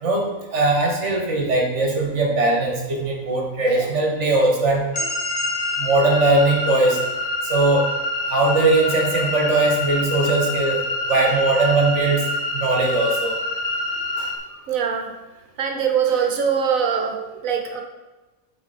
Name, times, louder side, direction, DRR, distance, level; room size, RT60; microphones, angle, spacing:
voice 1, 0.0-4.8 5.8-7.0 7.5-7.9 8.3-10.8 11.1-12.2 12.5-13.3, right 2 dB, 55° right, 0 dB, 1.7 m, -20 dB
voice 2, 3.6-4.0 4.9-5.1 7.6-7.7 14.0-17.8, right 7 dB, 70° right, 3 dB, 1.3 m, -24 dB
sound 1, 4.9-8.8, equal, 75° left, 1.5 m, -36 dB
sound 2, 4.9-14.4, left 1 dB, 45° left, 1.0 m, -26 dB
8.4 x 4.4 x 4.3 m, 1.2 s
omnidirectional pair, 1.5 m